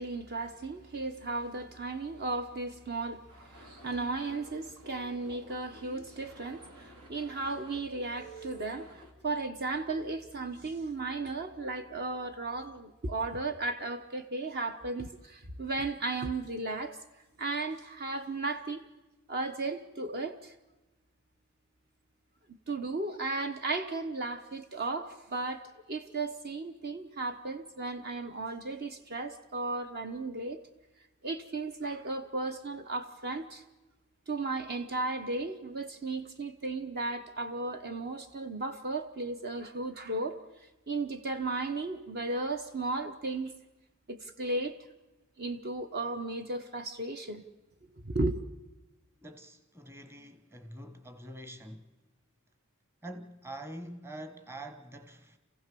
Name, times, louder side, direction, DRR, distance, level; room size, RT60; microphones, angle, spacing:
voice 1, 0.0-17.0 17.4-18.8 19.3-20.5 22.5-30.6 31.2-33.6 34.3-40.4 40.9-43.5 44.1-44.7 45.4-47.4 48.0-48.4, right 3 dB, 45° right, 1.0 m, -35 dB
sound 1, 3.3-9.1, right 2 dB, 85° right, 2.7 m, -51 dB
voice 2, 49.2-51.9 53.0-55.4, right 1 dB, 10° right, 1.3 m, -45 dB
28.0 x 15.5 x 6.9 m
head